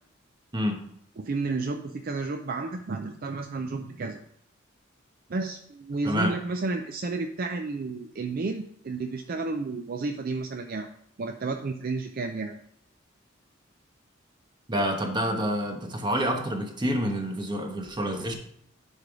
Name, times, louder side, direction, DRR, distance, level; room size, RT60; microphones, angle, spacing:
voice 1, 1.2-4.2 5.3-10.9 11.2-12.6, right 3 dB, 50° right, 5 dB, 0.4 m, -31 dB
voice 2, 6.0-6.3 14.7-18.3, equal, 25° right, 3 dB, 1.1 m, -28 dB
10.5 x 3.5 x 4.8 m, 0.70 s
head